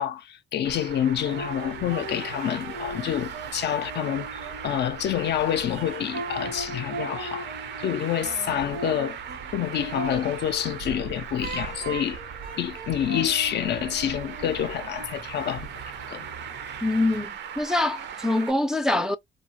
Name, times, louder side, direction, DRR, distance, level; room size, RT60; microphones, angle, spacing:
voice 1, 0.0-7.5 7.8-9.2 9.5-12.2 12.6-15.7 16.1-16.3, left 10 dB, 60° left, 0.4 m, -28 dB
Traffic noise roadway noise, 0.6-18.5, right 7 dB, 60° right, 0.5 m, -39 dB
sound 1, 1.1-17.2, right 3 dB, 80° right, 1.0 m, -39 dB
voice 2, 16.8-19.2, left 2 dB, 5° right, 0.4 m, -24 dB
2.4 x 2.3 x 2.7 m
cardioid pair, 90°, 20 cm